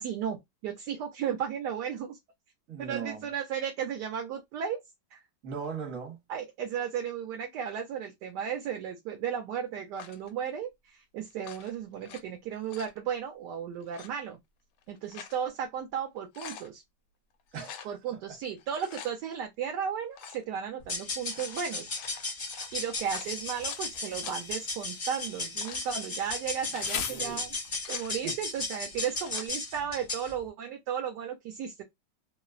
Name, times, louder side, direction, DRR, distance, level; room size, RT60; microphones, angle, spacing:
voice 1, 0.0-2.2 2.8-4.8 5.1-5.2 6.3-14.4 14.9-16.8 17.8-21.9 22.7-27.5 27.9-31.8, right 8 dB, 75° right, 1.1 m, -35 dB
voice 2, 2.7-3.3 5.4-6.2 17.5-18.2 27.1-27.5 28.2-28.4, right 6 dB, 50° right, 1.2 m, -39 dB
sound 1, 9.9-10.3 11.3-12.2 12.5-13.0 13.8-14.1 14.8-15.4 15.8-15.9 16.2-16.7 17.5-17.9 18.6-19.1 20.1-20.4 21.2-23.9 24.2-24.4 25.2-25.9 26.5-26.9 27.5-28.1 29.0-29.5, left 8 dB, 75° left, 1.1 m, -46 dB
sound 2, 20.8-30.3, left 3 dB, 40° left, 0.7 m, -36 dB
Insect, 23.0-27.9, left 8 dB, 90° left, 0.7 m, -42 dB
3.0 x 2.0 x 2.3 m
omnidirectional pair, 2.0 m